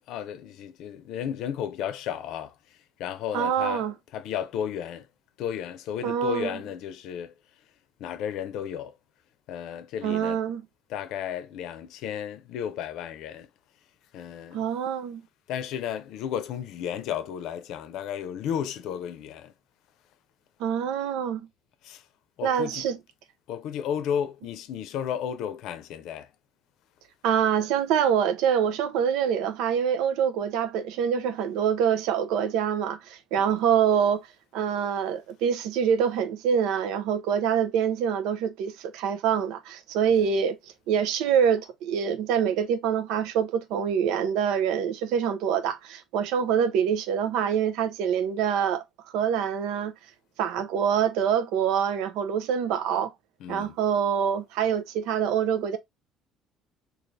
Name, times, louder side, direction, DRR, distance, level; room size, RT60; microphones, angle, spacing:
voice 1, 0.1-2.5 3.0-3.9 4.1-5.0 5.4-7.3 8.0-8.9 9.5-10.4 10.9-13.5 14.1-14.6 15.5-19.5 21.8-22.0 22.4-22.8 23.5-26.3 33.4-33.5 53.4-53.8, left 9 dB, 70° left, 0.6 m, -33 dB
voice 2, 3.3-3.9 6.0-6.6 10.0-10.6 14.5-15.2 20.6-21.5 22.4-23.0 27.2-34.3 34.5-48.8 49.1-49.9 50.4-53.1 53.5-55.8, right 8 dB, 85° right, 0.6 m, -25 dB
3.2 x 2.5 x 3.9 m
cardioid pair, 125°, 0 cm